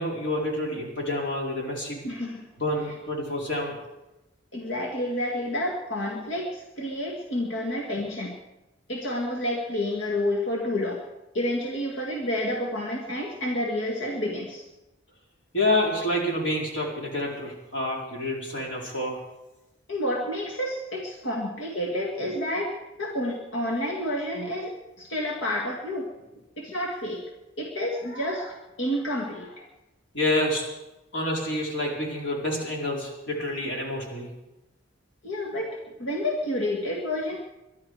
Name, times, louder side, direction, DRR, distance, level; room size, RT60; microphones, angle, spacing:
voice 1, 0.0-2.0 2.6-3.8 15.5-19.2 30.1-30.7 31.1-34.3, left 1 dB, 65° left, -2 dB, 4.5 m, -28 dB
voice 2, 2.0-2.5 4.5-8.4 8.9-11.1 11.3-14.6 19.9-26.1 26.6-27.2 27.6-29.6 35.2-37.4, left 1 dB, 90° left, 0 dB, 2.0 m, -29 dB
22.5 x 12.0 x 4.8 m, 1.0 s
head